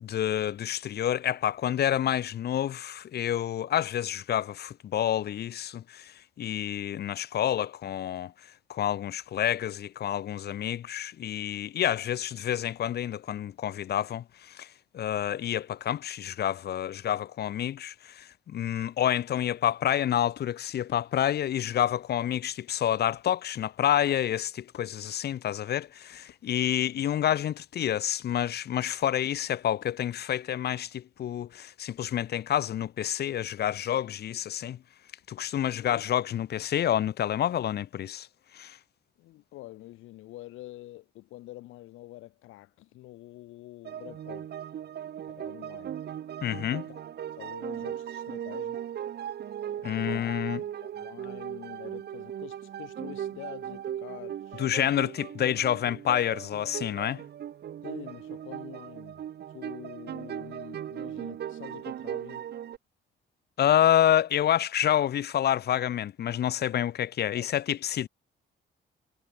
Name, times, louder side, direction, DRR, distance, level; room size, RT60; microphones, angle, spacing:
voice 1, 0.0-8.3 8.7-14.7 14.9-34.8 35.3-38.3 38.5-38.8 46.4-46.8 49.8-50.6 54.6-57.2 63.6-68.1, left 11 dB, 55° left, 0.6 m, -28 dB
sound 1, 18.5-30.4, left 11 dB, 70° left, 7.2 m, -61 dB
voice 2, 35.8-36.1 39.2-44.7 45.3-46.0 46.7-47.0 47.3-48.8 49.8-54.7 57.8-59.2 59.5-62.5 67.3-67.5, left 17 dB, 90° left, 1.1 m, -46 dB
sound 2, 43.8-62.8, right 10 dB, 55° right, 0.9 m, -38 dB
cardioid pair, 90°, 20 cm